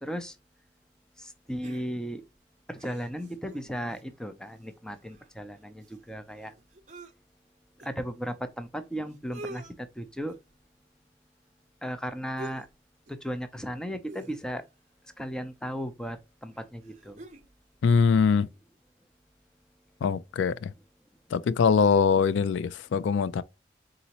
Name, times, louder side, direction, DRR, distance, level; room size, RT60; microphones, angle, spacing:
voice 1, 0.0-0.3 1.2-2.2 2.7-6.5 7.8-10.3 11.8-12.7 13.1-14.6 15.2-17.2, equal, 5° left, 0.4 m, -36 dB
sound 1, 1.6-2.3 2.8-4.2 4.6-4.7 4.9-7.1 7.8-7.9 8.8-8.9 9.1-9.7 10.3-10.6 12.4-12.8 13.1-13.3 14.1-14.7 15.8-15.9 16.5-17.5 17.9-18.0, right 2 dB, 40° right, 0.7 m, -47 dB
voice 2, 17.8-18.5 20.0-20.7 21.3-23.4, left 6 dB, 80° left, 0.3 m, -23 dB
4.1 x 3.8 x 2.8 m
head